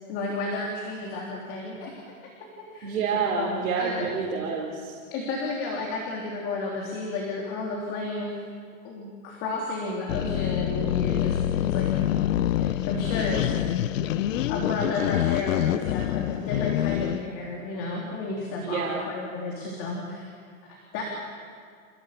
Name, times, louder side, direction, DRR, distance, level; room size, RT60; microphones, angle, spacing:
voice 1, 0.1-1.9 2.7-2.9 3.3-4.1 5.1-8.4 8.8-11.9 12.6-13.7 14.0-14.1 14.5-20.3 20.7-21.0, left 3 dB, 30° left, -2 dB, 3.5 m, -32 dB
voice 2, 2.8-5.0 18.6-19.0, right 5 dB, 75° right, -4 dB, 4.8 m, -28 dB
sound 1, 10.1-17.3, left 12 dB, 65° left, 0.9 m, -26 dB
29.5 x 16.5 x 8.5 m, 2.1 s
supercardioid pair, 170°, 41 cm